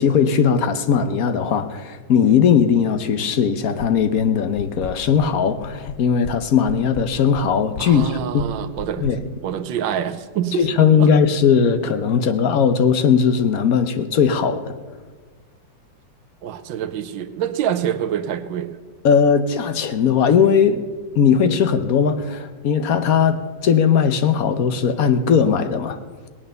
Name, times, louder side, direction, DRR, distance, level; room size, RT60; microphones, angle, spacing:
voice 1, 0.0-8.5 9.0-9.2 10.6-14.8 19.0-20.8 21.1-26.0, left 7 dB, 60° left, 10 dB, 1.1 m, -18 dB
sound 1, 3.8-4.3 4.6-5.3 5.6-6.4 6.7-9.2, left 5 dB, 80° left, 0.5 m, -33 dB
voice 2, 7.8-9.0 9.4-11.1 16.4-18.8, right 9 dB, 80° right, 9 dB, 1.5 m, -26 dB
19.5 x 8.5 x 6.8 m, 1.5 s
omnidirectional pair, 2.0 m